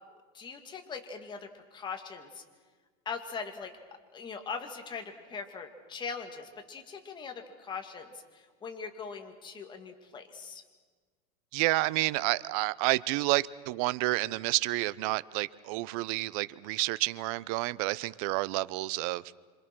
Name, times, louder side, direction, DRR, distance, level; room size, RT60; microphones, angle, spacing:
voice 1, 0.3-2.4 3.1-3.7 4.1-10.6, left 5 dB, 20° left, 2.5 m, -41 dB
voice 2, 11.5-19.2, right 20 dB, 60° right, 0.7 m, -29 dB
26.5 x 26.5 x 6.2 m
supercardioid pair, 145°, 21 cm